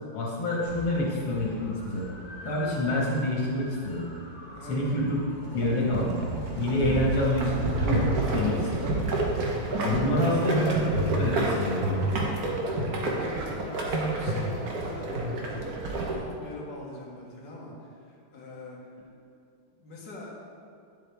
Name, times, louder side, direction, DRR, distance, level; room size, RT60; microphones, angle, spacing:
voice 1, 0.1-2.1 2.4-4.0 4.7-5.2 5.5-6.2 6.5-8.0 8.3-9.0 9.8-12.0, left 1 dB, 90° left, -4 dB, 2.2 m, -27 dB
sound 1, 0.6-6.9, left 1 dB, 35° left, 1.0 m, -45 dB
sound 2, 5.4-16.1, right 2 dB, 55° right, 1.4 m, -28 dB
voice 2, 10.0-10.3 12.9-15.8 16.1-18.9 19.8-20.3, left 2 dB, 60° left, -5 dB, 2.1 m, -44 dB
10.0 x 7.5 x 3.4 m, 2.3 s
omnidirectional pair, 2.1 m